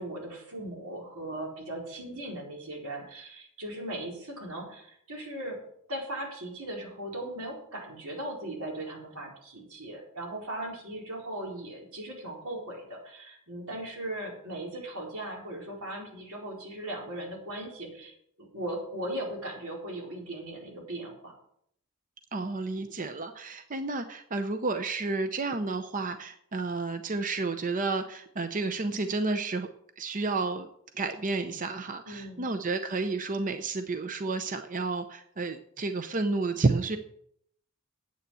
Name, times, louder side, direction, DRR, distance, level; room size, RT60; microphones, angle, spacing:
voice 1, 0.0-5.6 5.9-21.3 32.1-32.5, right 1 dB, 90° right, -1 dB, 4.5 m, -38 dB
voice 2, 22.3-29.7 30.0-30.7 31.0-37.0, right 3 dB, 40° right, 9 dB, 0.7 m, -31 dB
9.5 x 8.3 x 7.6 m, 0.69 s
head